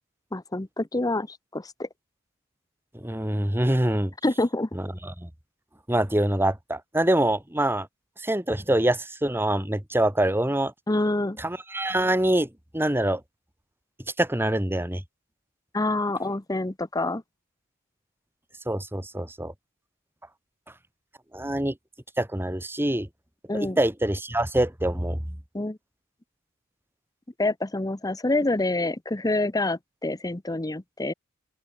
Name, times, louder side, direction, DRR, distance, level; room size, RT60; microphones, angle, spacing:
voice 1, 0.3-1.9 4.2-4.7 10.9-11.4 15.7-17.2 23.5-23.8 25.5-25.8 27.4-31.1, left 2 dB, 15° left, 0.8 m, -27 dB
voice 2, 3.0-4.1 4.7-5.3 5.9-7.9 8.2-10.7 11.4-12.5 12.7-13.2 14.2-15.0 18.7-19.5 21.3-21.7 22.2-23.1 23.5-25.2, right 1 dB, 10° right, 1.8 m, -25 dB
open air
head